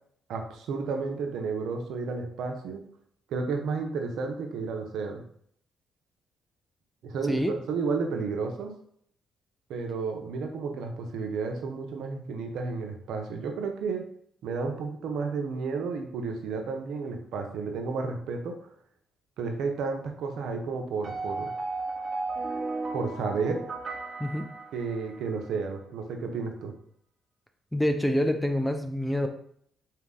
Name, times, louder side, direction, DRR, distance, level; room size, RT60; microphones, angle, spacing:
voice 1, 0.3-2.8 3.3-5.2 7.0-8.7 9.7-14.0 14.4-18.7 19.4-21.5 22.9-23.6 24.7-26.7, right 4 dB, 80° right, 4 dB, 0.7 m, -32 dB
sound 1, 21.0-25.3, right 3 dB, 35° right, 1.1 m, -35 dB
voice 2, 27.7-29.3, equal, 5° left, 5 dB, 0.5 m, -26 dB
4.1 x 2.8 x 3.7 m, 0.65 s
cardioid pair, 90°, 0 cm